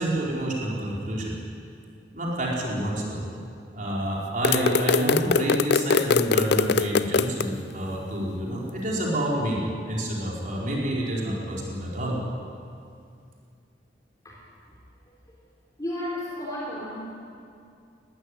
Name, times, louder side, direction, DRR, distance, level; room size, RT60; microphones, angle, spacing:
voice 1, 0.0-1.4 2.1-3.2 3.7-12.2, right 1 dB, 45° right, -4 dB, 4.5 m, -28 dB
sound 1, 4.4-7.5, left 5 dB, 60° left, 0.5 m, -23 dB
voice 2, 15.8-17.2, left 1 dB, 20° left, -4 dB, 3.8 m, -33 dB
21.0 x 15.0 x 10.0 m, 2.4 s
head